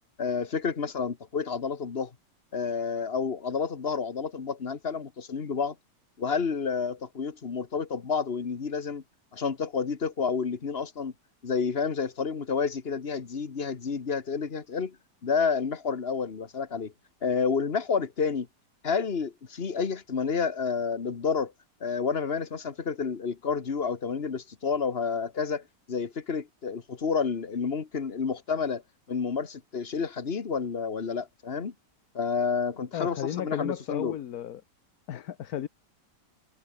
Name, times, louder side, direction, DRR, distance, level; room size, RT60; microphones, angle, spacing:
voice 1, 0.2-2.1 2.5-5.7 6.2-9.0 9.3-11.1 11.4-15.0 15.2-16.9 17.2-18.5 18.8-21.5 21.8-28.8 29.1-31.7 32.1-34.2, left 5 dB, 35° left, 1.6 m, -30 dB
voice 2, 32.9-34.6 35.1-35.7, left 10 dB, 60° left, 1.4 m, -34 dB
omnidirectional pair, 1.9 m